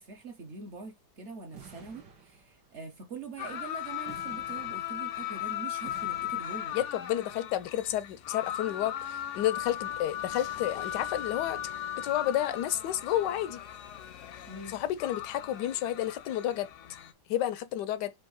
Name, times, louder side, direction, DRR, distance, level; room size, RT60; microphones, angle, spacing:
voice 1, 0.0-6.8 14.5-14.8, right 4 dB, 55° right, 0.9 m, -44 dB
sound 1, 1.5-2.8 4.1-5.3 5.8-7.0, right 6 dB, 85° right, 1.7 m, -52 dB
sound 2, 3.4-17.1, left 11 dB, 65° left, 0.7 m, -37 dB
voice 2, 6.7-11.6 12.0-13.6 14.7-16.7 17.3-18.1, left 12 dB, 85° left, 1.2 m, -31 dB
4.4 x 2.5 x 4.7 m
omnidirectional pair, 1.8 m